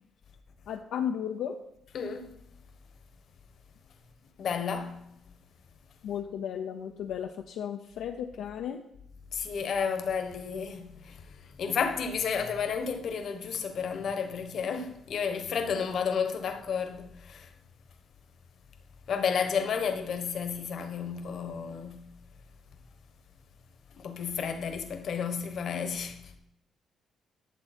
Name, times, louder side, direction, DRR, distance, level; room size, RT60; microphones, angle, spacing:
voice 1, 0.7-1.6 6.0-8.8, left 8 dB, 80° left, 0.6 m, -34 dB
voice 2, 1.9-2.3 4.4-5.0 9.3-11.3 11.6-17.5 19.1-22.1 24.0-26.3, left 6 dB, 60° left, 1.2 m, -32 dB
10.5 x 6.9 x 4.3 m
cardioid pair, 90°, 0 cm